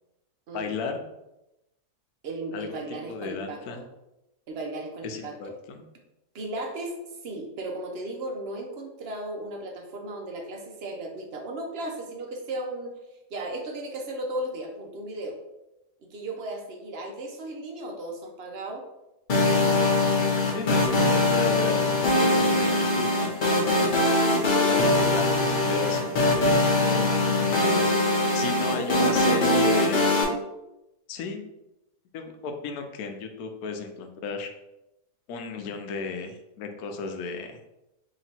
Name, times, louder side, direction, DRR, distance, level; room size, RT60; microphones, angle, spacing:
voice 1, 0.5-1.0 2.5-2.8 3.1-3.8 5.0-5.8 20.5-23.4 24.7-26.5 26.8-27.9 28.3-30.1 31.1-31.5 32.1-34.5 35.3-37.6, left 4 dB, 75° left, 4 dB, 1.0 m, -34 dB
voice 2, 2.2-3.9 4.5-5.6 6.3-12.9 13.3-15.4 16.0-18.8 24.3-25.1 28.6-29.9, right 1 dB, 55° right, 2 dB, 0.7 m, -35 dB
sound 1, 19.3-30.2, left 2 dB, 45° left, 0.7 m, -22 dB
3.3 x 2.9 x 4.2 m, 0.91 s
omnidirectional pair, 1.6 m